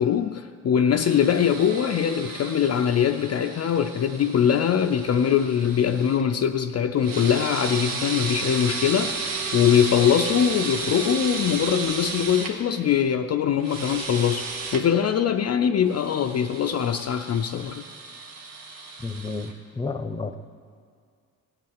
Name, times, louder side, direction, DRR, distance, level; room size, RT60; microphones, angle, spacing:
voice 1, 0.0-17.8, left 8 dB, 50° left, 5 dB, 0.5 m, -22 dB
sound 1, 0.9-6.2 7.0-12.5 13.6-14.8 15.9-19.5, right 4 dB, 75° right, 1.5 m, -33 dB
voice 2, 19.0-20.4, left 3 dB, 15° left, 9 dB, 0.8 m, -31 dB
17.0 x 5.7 x 9.0 m, 2.2 s
cardioid pair, 75°, 34 cm